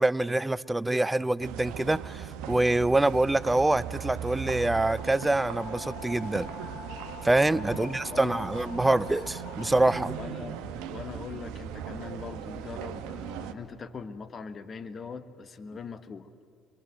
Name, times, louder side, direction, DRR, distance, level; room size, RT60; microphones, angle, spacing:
voice 1, 0.0-6.5 7.2-10.2, right 2 dB, 15° right, 20 dB, 0.5 m, -25 dB
sound 1, 1.4-13.5, right 9 dB, 70° right, 1.2 m, -38 dB
sound 2, 3.3-10.6, left 8 dB, 70° left, 1.0 m, -46 dB
voice 2, 7.7-8.5 10.2-16.3, left 5 dB, 40° left, 11 dB, 1.3 m, -41 dB
24.0 x 22.0 x 7.9 m, 2.3 s
hypercardioid pair, 60°, 0 cm